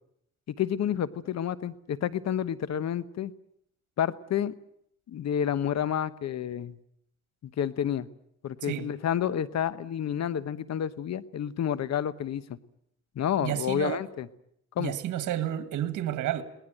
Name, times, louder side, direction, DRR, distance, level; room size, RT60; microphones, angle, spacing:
voice 1, 0.5-3.3 4.0-4.5 5.1-6.7 7.4-8.1 8.4-12.6 13.1-14.3 14.8-14.9, left 9 dB, 60° left, 1.1 m, -29 dB
voice 2, 13.4-14.0 14.8-16.4, right 12 dB, 80° right, 1.7 m, -30 dB
22.0 x 18.5 x 9.1 m
cardioid pair, 90°, 30 cm